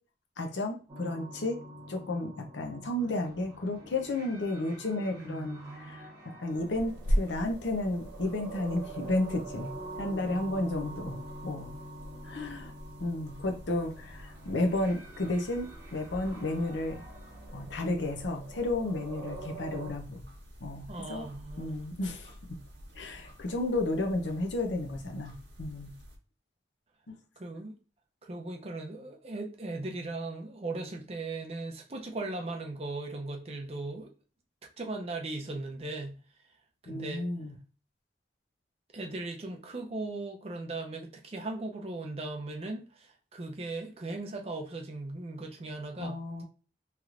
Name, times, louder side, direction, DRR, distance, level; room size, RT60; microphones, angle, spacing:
voice 1, 0.4-1.6 1.9-9.7 10.0-11.7 12.2-12.7 13.0-17.0 17.5-20.2 20.6-21.3 21.6-22.6 22.9-25.9 27.1-27.2 36.9-37.5 46.0-46.4, left 2 dB, 85° left, 0.7 m, -32 dB
sound 1, 0.9-19.9, right 2 dB, 20° right, 0.9 m, -46 dB
voice 2, 5.1-6.1 20.9-21.8 27.4-27.7 28.2-34.1 34.8-36.2 36.8-37.3 38.9-46.2, right 2 dB, 35° right, 0.5 m, -38 dB
sound 2, 6.5-26.2, equal, 85° right, 1.0 m, -41 dB
3.2 x 2.9 x 2.4 m
head